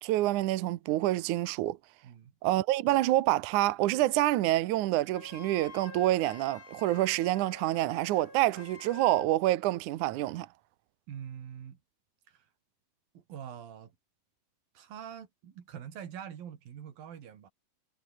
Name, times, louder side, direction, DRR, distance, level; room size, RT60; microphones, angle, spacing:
voice 1, 0.0-1.8 2.4-10.5, right 16 dB, 70° right, 2.2 m, -27 dB
Wind instrument woodwind instrument, 5.1-9.3, left 4 dB, 45° left, 5.8 m, -49 dB
voice 2, 11.1-11.8 12.3-12.5 13.1-14.0 14.7-17.5, right 9 dB, 85° right, 4.3 m, -44 dB
omnidirectional pair, 4.0 m